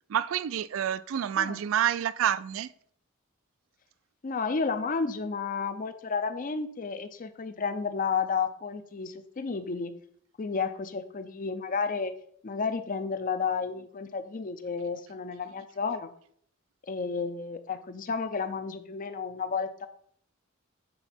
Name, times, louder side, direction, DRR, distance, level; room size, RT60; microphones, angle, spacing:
voice 1, 0.1-2.7, right 9 dB, 70° right, 0.3 m, -28 dB
voice 2, 4.2-9.9 10.4-12.1 12.4-16.1 16.9-19.9, left 5 dB, 40° left, 0.5 m, -32 dB
7.8 x 3.9 x 4.3 m
head